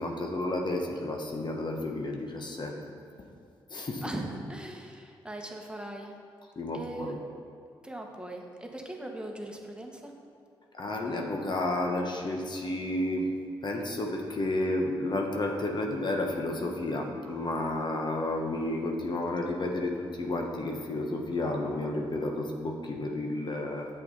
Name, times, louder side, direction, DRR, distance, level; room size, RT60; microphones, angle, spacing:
voice 1, 0.0-2.8 3.7-4.0 6.6-7.2 10.7-13.3 13.6-23.9, left 1 dB, 45° left, 1 dB, 1.1 m, -31 dB
voice 2, 4.0-6.2 6.7-7.2 7.8-10.1, right 1 dB, 10° right, 1 dB, 1.3 m, -39 dB
8.3 x 7.5 x 4.0 m, 2.4 s
hypercardioid pair, 45°, 11 cm